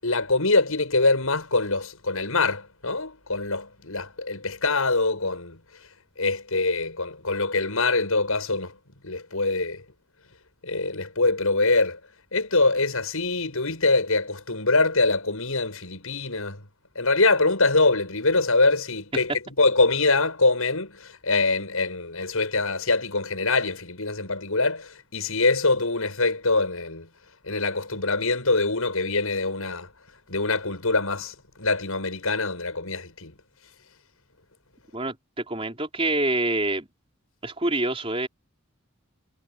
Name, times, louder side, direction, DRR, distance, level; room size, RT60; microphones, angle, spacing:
voice 1, 0.0-5.6 6.2-8.8 9.0-9.8 10.6-12.0 12.3-16.7 16.9-27.1 27.4-29.9 30.3-33.3, left 3 dB, 80° left, 6.9 m, -24 dB
voice 2, 34.9-36.9 37.4-38.3, right 2 dB, 25° right, 4.4 m, -26 dB
head